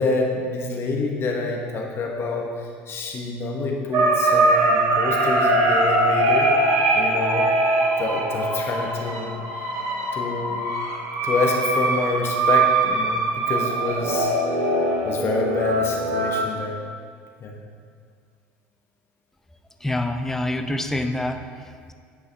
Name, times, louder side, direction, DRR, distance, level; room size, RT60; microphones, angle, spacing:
voice 1, 0.0-6.5 6.9-7.5 8.0-9.4 10.1-10.6 11.2-14.3 15.0-16.7 17.4-17.5, left 3 dB, 45° left, 0 dB, 1.2 m, -27 dB
sound 1, 3.9-16.4, right 2 dB, 65° right, 1.5 m, -22 dB
voice 2, 19.8-21.9, left 1 dB, 5° left, 6 dB, 0.5 m, -27 dB
9.6 x 5.3 x 3.4 m, 2.1 s
supercardioid pair, 95°, 6 cm